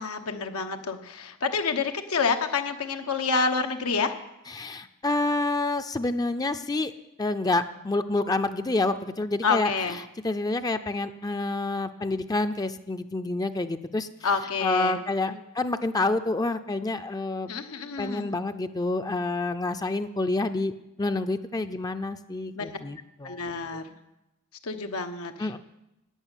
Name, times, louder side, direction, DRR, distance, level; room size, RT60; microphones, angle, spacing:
voice 1, 0.0-4.1 9.4-10.0 14.2-15.0 17.5-18.3 22.5-22.7 23.2-23.8 24.6-25.6, left 4 dB, 85° left, 6 dB, 1.1 m, -28 dB
voice 2, 4.5-6.9 7.2-9.7 10.2-14.1 14.6-17.5 18.0-20.7 21.0-23.4 25.4-25.6, left 2 dB, 15° left, 8 dB, 0.5 m, -28 dB
12.0 x 8.9 x 9.0 m, 0.92 s
head